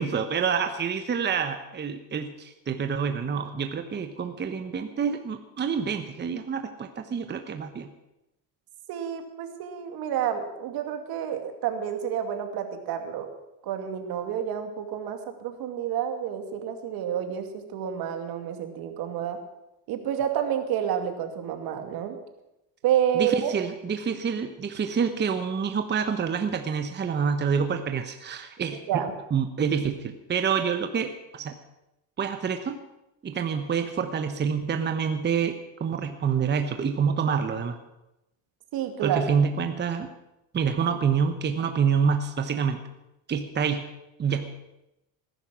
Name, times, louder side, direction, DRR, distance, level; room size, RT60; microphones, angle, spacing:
voice 1, 0.0-7.9 23.1-28.8 29.3-31.6 32.2-32.8 33.2-37.8 39.0-40.1 40.5-42.8 43.3-43.8 44.2-44.5, right 6 dB, 25° right, 7 dB, 1.1 m, -27 dB
voice 2, 8.9-13.3 13.6-19.4 19.9-22.2 22.8-23.5 28.9-29.1 38.7-39.2, right 9 dB, 65° right, 6 dB, 2.5 m, -29 dB
19.0 x 11.0 x 6.2 m, 0.92 s
cardioid pair, 115°, 39 cm